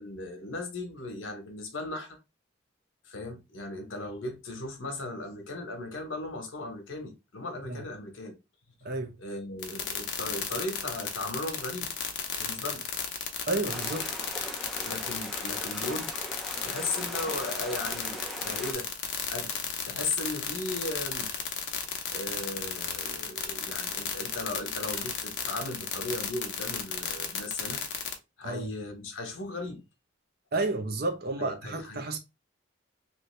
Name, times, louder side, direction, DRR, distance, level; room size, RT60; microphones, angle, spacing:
voice 1, 0.0-2.2 3.0-8.3 8.8-8.9 9.2-11.9 12.4-12.8 14.9-16.1 16.6-18.9 19.3-19.6 19.8-21.3 22.1-27.8 28.4-29.8 31.4-32.0, left 2 dB, 80° left, 1.0 m, -37 dB
voice 2, 8.8-9.2 13.5-14.1 28.4-28.7 30.5-32.2, right 2 dB, 50° right, 0.7 m, -31 dB
sound 1, 9.6-28.1, left 8 dB, 60° left, 0.7 m, -33 dB
sound 2, 13.7-18.7, equal, ahead, 0.5 m, -40 dB
3.1 x 2.7 x 3.2 m
head